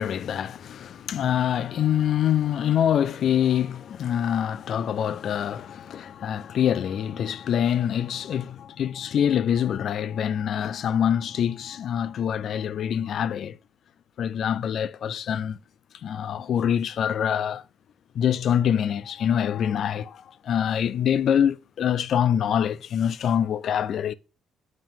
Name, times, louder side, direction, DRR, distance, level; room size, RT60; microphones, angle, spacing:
voice 1, 0.0-13.6 14.2-15.6 16.0-17.6 18.2-24.1, left 9 dB, 65° left, 0.3 m, -25 dB
7.3 x 2.9 x 5.5 m
cardioid pair, 90°, 0 cm